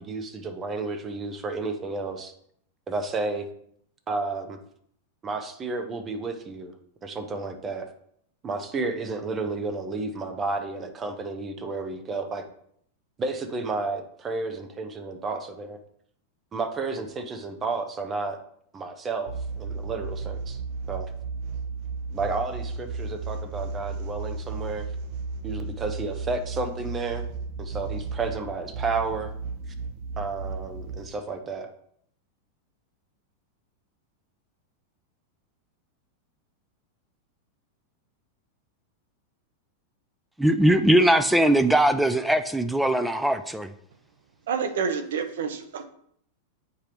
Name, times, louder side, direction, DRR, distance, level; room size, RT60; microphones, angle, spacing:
voice 1, 0.0-2.3 2.9-3.5 4.1-4.6 5.2-6.7 7.0-7.9 8.4-12.4 13.2-15.8 16.5-18.4 18.7-20.6 20.9-21.1 22.1-24.9 25.4-27.2 27.6-29.3 30.2-31.7, right 3 dB, 20° right, 7 dB, 0.7 m, -31 dB
sound 1, 19.3-31.1, right 4 dB, 50° right, 0.7 m, -34 dB
voice 2, 40.4-43.7, right 1 dB, 5° right, 11 dB, 0.3 m, -20 dB
voice 3, 44.5-45.8, right 6 dB, 80° right, 9 dB, 0.8 m, -28 dB
8.3 x 5.0 x 3.0 m, 0.68 s
supercardioid pair, 160°, 0 cm